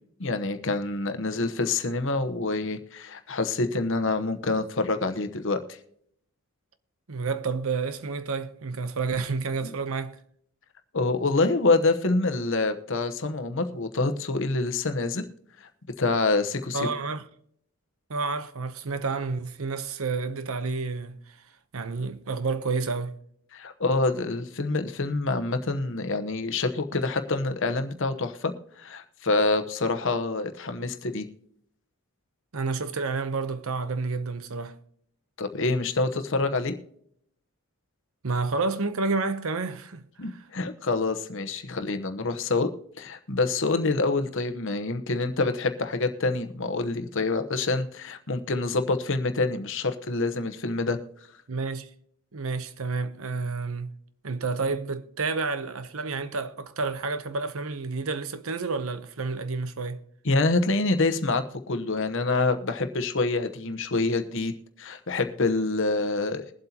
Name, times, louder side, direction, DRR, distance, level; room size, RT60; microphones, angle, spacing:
voice 1, 0.2-5.6 10.9-15.2 15.6-15.7 16.0-16.9 23.5-28.5 28.8-31.3 35.4-36.8 40.2-42.7 43.0-51.0 60.2-64.5 64.8-66.5, left 3 dB, 60° left, 1.0 m, -26 dB
voice 2, 7.1-10.2 16.7-17.2 18.1-21.2 21.7-23.2 32.5-34.8 38.2-40.4 51.5-51.9 52.3-53.9 54.2-60.0, right 4 dB, 65° right, 0.8 m, -30 dB
22.0 x 7.9 x 2.9 m
head